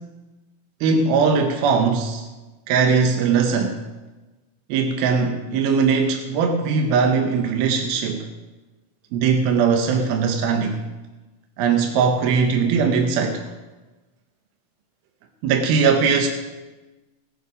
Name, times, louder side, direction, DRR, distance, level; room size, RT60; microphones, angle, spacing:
voice 1, 0.8-2.2 2.7-3.8 4.7-8.3 9.1-10.8 11.6-13.4 15.4-16.3, right 5 dB, 80° right, 4 dB, 2.8 m, -20 dB
19.5 x 8.2 x 5.0 m, 1.2 s
omnidirectional pair, 4.4 m